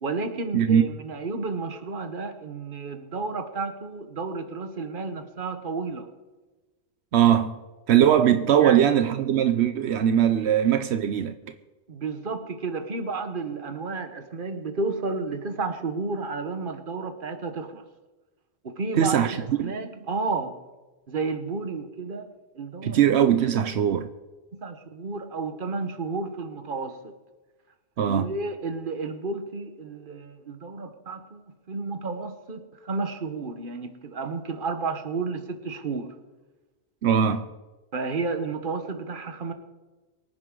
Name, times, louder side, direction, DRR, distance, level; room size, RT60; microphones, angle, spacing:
voice 1, 0.0-6.1 8.5-8.8 10.4-10.5 11.9-17.8 18.6-20.6 21.1-23.0 24.5-27.1 28.1-31.4 31.7-36.1 37.9-39.5, right 4 dB, 55° right, 1.4 m, -32 dB
voice 2, 0.5-0.9 7.1-7.6 7.9-11.3 18.9-19.7 22.8-24.1 28.0-28.3 37.0-37.5, right 9 dB, 85° right, 0.9 m, -21 dB
23.5 x 9.3 x 3.8 m
omnidirectional pair, 1.1 m